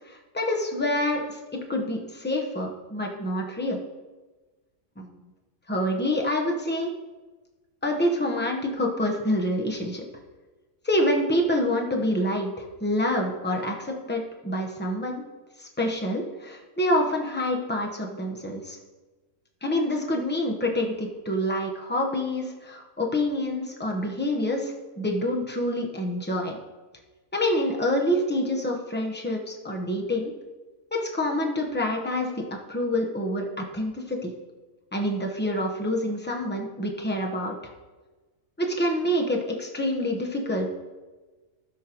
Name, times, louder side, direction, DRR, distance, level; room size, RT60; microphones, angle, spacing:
voice 1, 0.1-3.8 5.0-5.1 5.7-6.9 7.8-10.0 10.8-15.2 15.6-18.8 19.6-26.6 27.3-30.3 30.9-34.3 34.9-37.6 38.6-40.7, left 1 dB, 10° left, 1 dB, 0.7 m, -27 dB
16.0 x 6.5 x 3.0 m, 1.3 s
omnidirectional pair, 1.7 m